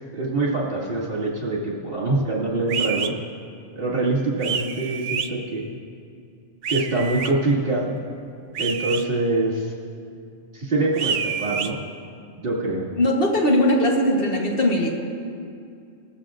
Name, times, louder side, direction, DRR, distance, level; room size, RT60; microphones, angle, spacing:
voice 1, 0.1-3.1 3.7-5.7 6.7-8.0 8.6-9.7 10.5-11.8 12.4-12.9, right 2 dB, 50° right, -6 dB, 2.5 m, -24 dB
sound 1, 2.7-3.1 4.4-5.3 6.6-7.3 8.6-9.0 10.9-11.7, right 7 dB, 85° right, 1.0 m, -27 dB
voice 2, 12.9-15.0, left 1 dB, 50° left, 0 dB, 1.4 m, -20 dB
19.5 x 14.5 x 2.5 m, 2.4 s
omnidirectional pair, 1.2 m